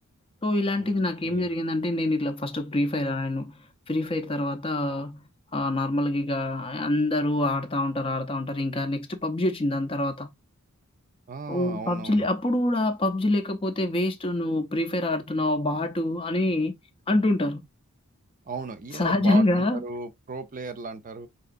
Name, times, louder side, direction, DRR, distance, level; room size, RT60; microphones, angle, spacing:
voice 1, 0.4-10.3 11.5-16.7 17.1-17.7 18.9-19.8, left 1 dB, 25° left, 0.5 m, -26 dB
voice 2, 11.3-12.3 18.4-21.3, right 4 dB, 40° right, 0.5 m, -36 dB
5.4 x 2.9 x 2.4 m
head